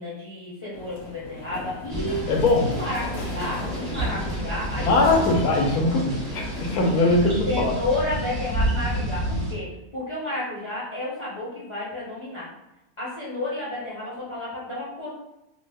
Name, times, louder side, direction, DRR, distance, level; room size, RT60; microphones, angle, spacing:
voice 1, 0.0-2.2 2.6-5.2 6.8-7.0 7.5-12.5 13.0-15.1, left 2 dB, 30° left, -9 dB, 0.6 m, -31 dB
sound 1, 0.7-7.0, left 2 dB, 65° left, 0.8 m, -37 dB
sound 2, 1.9-9.5, right 1 dB, 45° right, 0.7 m, -30 dB
voice 2, 2.3-2.7 4.7-7.7, left 2 dB, 80° left, 0 dB, 1.1 m, -21 dB
2.8 x 2.0 x 3.4 m, 0.94 s
omnidirectional pair, 1.5 m